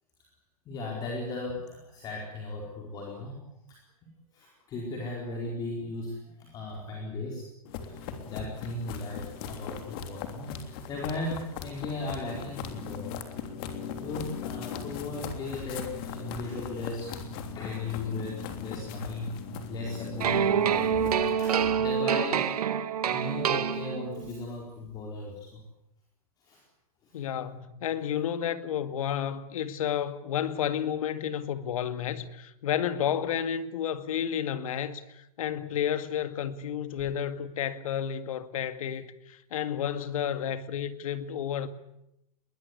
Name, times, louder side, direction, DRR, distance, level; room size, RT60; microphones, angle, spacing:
voice 1, 0.7-3.8 4.3-7.5 7.8-13.1 14.0-17.2 17.5-20.5 20.9-21.1 21.4-22.5 23.0-25.6 26.4-26.6 27.0-27.2, left 2 dB, 20° left, 4.5 m, -37 dB
sound 1, 7.6-21.3, left 6 dB, 40° left, 3.2 m, -39 dB
sound 2, 20.2-24.3, right 8 dB, 85° right, 2.0 m, -26 dB
voice 2, 27.1-41.7, left 9 dB, 65° left, 2.1 m, -31 dB
22.0 x 20.0 x 9.7 m
supercardioid pair, 165°, 19 cm